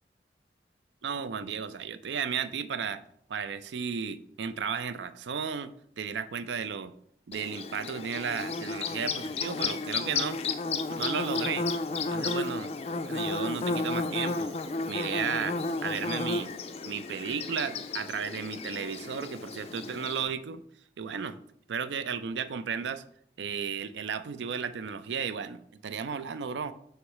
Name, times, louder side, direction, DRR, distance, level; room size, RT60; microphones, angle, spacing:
voice 1, 1.0-3.0 3.3-5.7 6.0-6.9 7.3-10.4 11.0-11.7 12.1-12.7 13.1-14.6 14.9-16.6 16.9-20.6 21.0-21.4 21.7-23.0 23.4-26.7, right 6 dB, 80° right, 13 dB, 0.4 m, -34 dB
Bird / Buzz, 7.3-20.2, left 3 dB, 35° left, 0.3 m, -33 dB
6.5 x 3.1 x 4.7 m, 0.67 s
head